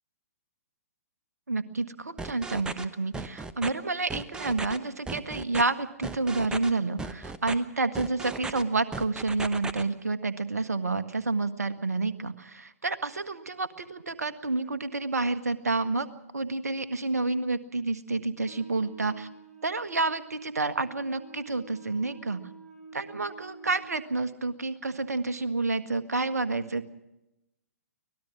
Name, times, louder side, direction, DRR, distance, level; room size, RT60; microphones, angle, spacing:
voice 1, 1.5-16.1 16.3-19.3 19.6-22.4 22.9-26.9, right 3 dB, 75° right, 12 dB, 1.6 m, -29 dB
sound 1, 2.2-2.8 3.1-3.7 4.1-4.8 5.1-5.6 6.0-6.7 7.0-7.5 7.9-8.6 8.9-9.8, right 3 dB, 10° right, 1.1 m, -36 dB
Wind instrument woodwind instrument, 18.4-24.2, right 3 dB, 85° left, 5.9 m, -49 dB
24.5 x 19.0 x 6.1 m, 0.90 s
figure-of-eight pair, 120°, 9 cm